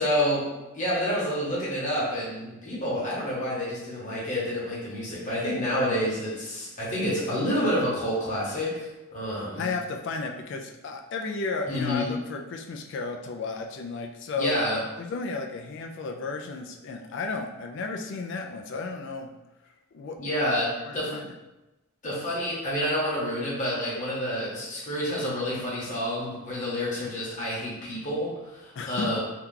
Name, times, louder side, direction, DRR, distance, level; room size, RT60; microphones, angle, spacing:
voice 1, 0.0-9.7 11.7-12.1 14.4-14.8 20.2-21.1 22.0-29.2, equal, 35° left, -7 dB, 1.0 m, -28 dB
voice 2, 9.6-19.3 19.9-20.3 20.8-21.3 28.8-29.2, left 3 dB, 55° left, 3 dB, 0.3 m, -33 dB
2.8 x 2.3 x 3.6 m, 1.0 s
head